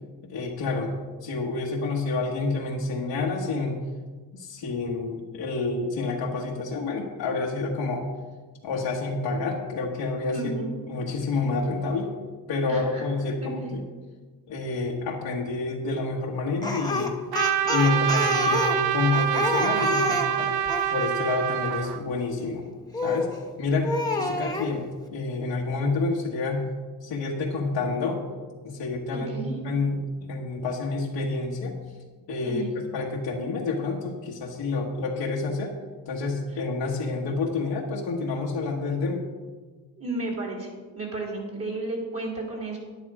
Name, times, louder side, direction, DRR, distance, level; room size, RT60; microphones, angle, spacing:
voice 1, 0.3-0.9 1.2-3.8 4.3-8.0 8.6-10.6 10.9-12.1 12.5-13.8 14.5-17.2 17.7-20.5 20.9-22.7 23.0-23.3 23.6-26.7 27.0-28.2 28.6-31.8 32.3-35.7 36.0-39.2, left 3 dB, 85° left, -3 dB, 1.5 m, -28 dB
voice 2, 10.3-10.7 12.7-13.0 13.4-13.7 29.1-29.6 32.5-32.7 40.0-40.7 40.9-42.8, right 2 dB, 35° right, 0 dB, 3.0 m, -33 dB
Speech, 16.6-20.9 22.9-23.4 23.8-24.7, left 3 dB, 10° left, 1.4 m, -28 dB
Trumpet, 17.3-22.0, right 10 dB, 65° right, 0.9 m, -26 dB
10.5 x 10.5 x 4.9 m, 1.4 s
cardioid pair, 110°, 42 cm